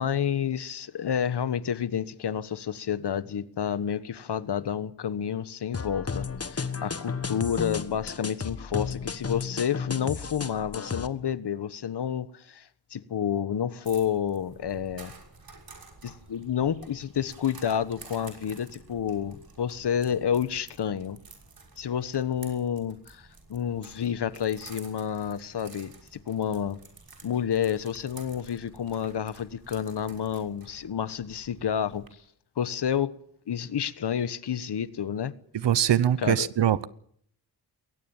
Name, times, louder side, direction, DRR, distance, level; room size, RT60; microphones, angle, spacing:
voice 1, 0.0-15.1 16.0-21.2 21.8-26.8 27.2-32.0 32.6-33.1 33.5-35.3 36.2-36.5, left 8 dB, 70° left, 1.3 m, -30 dB
sound 1, 5.7-11.1, left 5 dB, 35° left, 1.5 m, -33 dB
sound 2, 13.8-32.1, right 3 dB, 55° right, 6.2 m, -51 dB
voice 2, 35.5-36.9, right 10 dB, 80° right, 1.0 m, -23 dB
21.5 x 18.5 x 7.3 m
cardioid pair, 70°, 42 cm